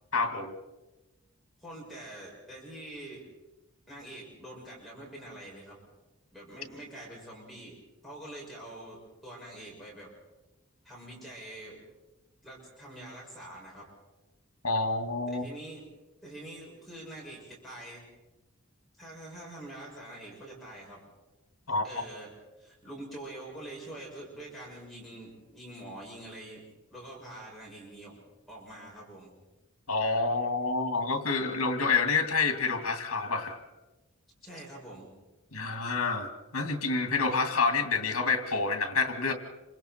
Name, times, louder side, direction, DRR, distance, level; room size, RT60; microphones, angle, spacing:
voice 1, 0.1-0.5 14.6-15.4 21.7-21.8 29.9-33.6 35.5-39.3, left 4 dB, 75° left, 6 dB, 2.4 m, -28 dB
voice 2, 1.6-3.2 3.9-5.8 6.3-7.8 8.0-10.1 10.8-11.8 12.4-13.9 15.3-15.8 16.2-18.0 19.0-21.0 21.7-22.3 22.6-26.6 26.9-28.2 28.5-29.3 34.4-35.1, right 1 dB, ahead, -5 dB, 6.6 m, -45 dB
27.5 x 26.0 x 4.5 m, 1.1 s
head